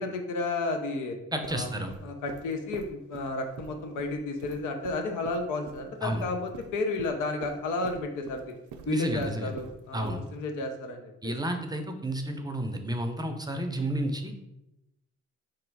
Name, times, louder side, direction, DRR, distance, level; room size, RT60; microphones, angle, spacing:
voice 1, 0.0-1.2 1.5-1.7 2.0-8.5 8.9-11.3, left 2 dB, 85° left, 4 dB, 0.8 m, -32 dB
voice 2, 1.3-1.9 6.0-6.3 8.9-9.5 9.9-10.2 11.2-14.3, right 1 dB, 15° right, 5 dB, 0.5 m, -31 dB
sound 1, 1.4-10.4, right 5 dB, 80° right, 0.6 m, -46 dB
3.7 x 3.1 x 4.6 m, 0.92 s
cardioid pair, 90°, 30 cm